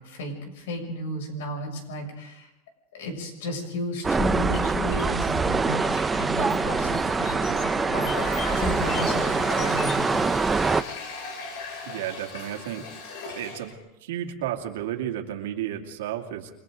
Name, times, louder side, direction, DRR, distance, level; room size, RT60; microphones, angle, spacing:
voice 1, 0.0-2.5 2.9-10.4, left 1 dB, 85° left, 3 dB, 6.8 m, -33 dB
sound 1, 4.0-10.8, right 4 dB, 15° right, 0.6 m, -24 dB
sound 2, 4.5-10.0, left 4 dB, 45° left, 6.0 m, -39 dB
Water tap faucet, 8.0-13.7, left 4 dB, 70° left, 6.8 m, -38 dB
voice 2, 11.8-12.9 13.3-13.7 14.0-16.5, right 11 dB, 90° right, 2 dB, 2.6 m, -32 dB
29.0 x 23.5 x 3.9 m, 0.91 s
supercardioid pair, 140°, 0 cm